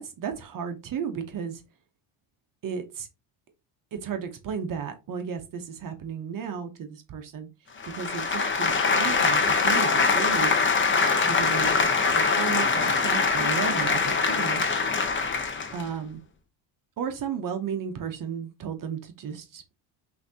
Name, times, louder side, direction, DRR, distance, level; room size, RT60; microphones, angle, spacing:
voice 1, 0.0-1.6 2.6-3.1 3.9-7.5 7.9-10.5 11.2-14.6 15.7-16.2 17.0-19.6, right 7 dB, 40° right, 0.8 m, -34 dB
sound 1, 7.8-15.8, left 4 dB, 25° left, 0.7 m, -23 dB
5.6 x 2.7 x 2.7 m
cardioid pair, 110°, 48 cm